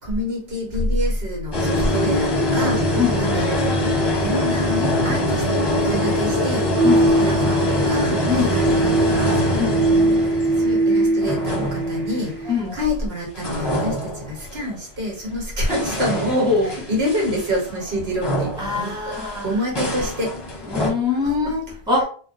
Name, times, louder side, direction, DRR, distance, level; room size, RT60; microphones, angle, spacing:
voice 1, 0.0-6.7 7.1-9.7 10.6-16.5 16.9-19.2 19.4-20.4, equal, 80° right, 1.4 m, -27 dB
sound 1, 1.5-13.1 13.4-14.7 15.3-20.9, left 1 dB, 30° left, 0.6 m, -23 dB
voice 2, 2.9-3.5 6.8-7.1 8.3-8.6 9.5-9.9 12.5-12.8 16.3-16.8 18.6-19.6 20.6-22.0, left 4 dB, 5° right, 0.9 m, -23 dB
sound 2, 6.7-12.5, right 2 dB, 40° right, 1.0 m, -21 dB
2.4 x 2.2 x 4.0 m
omnidirectional pair, 1.0 m